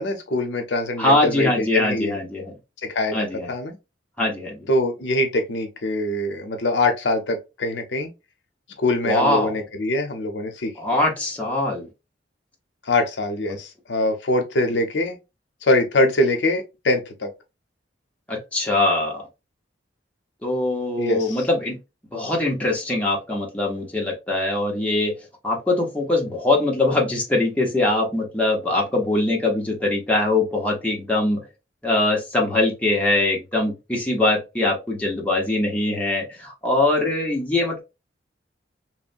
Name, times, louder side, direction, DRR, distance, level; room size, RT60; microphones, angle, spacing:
voice 1, 0.0-2.2 2.8-3.7 4.7-8.1 8.8-10.7 12.9-15.2 15.6-17.3 21.0-21.4, left 2 dB, 75° left, 0.7 m, -23 dB
voice 2, 1.0-2.5 3.1-3.5 4.2-4.7 9.0-9.6 10.8-11.9 18.3-19.3 20.4-21.8 22.1-25.2 25.4-31.5 31.8-37.8, left 2 dB, 10° left, 0.7 m, -22 dB
3.1 x 2.1 x 2.5 m
head